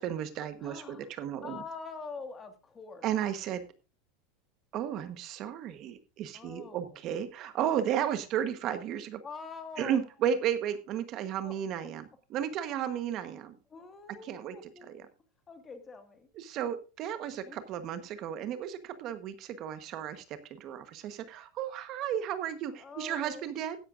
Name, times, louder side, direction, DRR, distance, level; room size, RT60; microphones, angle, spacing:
voice 1, 0.0-1.6 3.0-3.6 4.7-9.2 9.8-13.6 14.2-14.6 16.4-23.8, right 9 dB, 35° right, 10 dB, 1.1 m, -34 dB
voice 2, 0.6-1.1 1.4-3.1 6.3-7.0 9.2-10.0 11.4-11.9 13.7-14.9 15.5-16.3 17.4-18.0 22.7-23.5, left 4 dB, 15° left, 7 dB, 1.7 m, -45 dB
16.0 x 11.0 x 2.5 m, 0.32 s
supercardioid pair, 165°, 0 cm